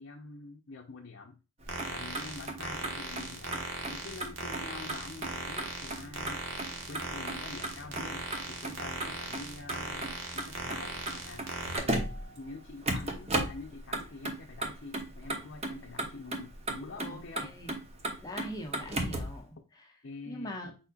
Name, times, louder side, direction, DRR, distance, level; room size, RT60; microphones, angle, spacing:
voice 1, 0.0-1.4 1.9-3.6 3.9-6.4 6.9-11.5 12.4-17.6 20.0-20.6, left 3 dB, 60° left, 1 dB, 0.6 m, -46 dB
Motor vehicle (road), 1.6-19.4, right 1 dB, 30° right, 0.9 m, -37 dB
sound 1, 1.7-11.8, right 2 dB, 70° right, 1.3 m, -39 dB
voice 2, 17.0-17.7 18.2-19.6 20.3-20.7, equal, 20° left, 1 dB, 1.0 m, -41 dB
5.0 x 4.2 x 2.3 m, 0.30 s
head